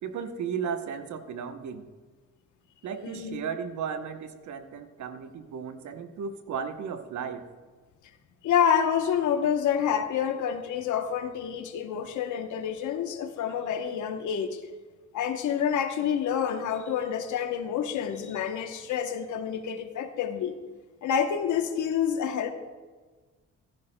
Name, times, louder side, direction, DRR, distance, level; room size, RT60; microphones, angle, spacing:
voice 1, 0.0-1.8 2.8-7.4, right 6 dB, 70° right, 8 dB, 1.0 m, -35 dB
voice 2, 3.0-3.4 8.4-14.6 15.1-20.5 21.0-22.5, left 8 dB, 75° left, 8 dB, 0.9 m, -28 dB
14.5 x 11.0 x 2.2 m, 1.4 s
cardioid pair, 90°, 30 cm